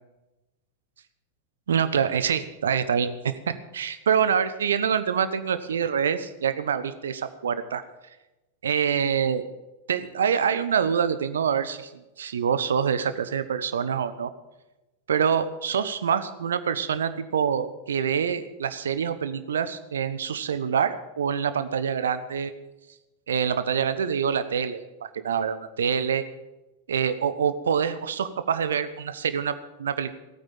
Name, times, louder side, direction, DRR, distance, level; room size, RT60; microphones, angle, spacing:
voice 1, 1.7-7.8 8.6-9.5 9.9-14.3 15.1-22.5 23.3-26.2 26.9-30.1, right 7 dB, 65° right, 13 dB, 1.0 m, -26 dB
16.0 x 9.1 x 7.2 m, 1.0 s
figure-of-eight pair, 90°, 0 cm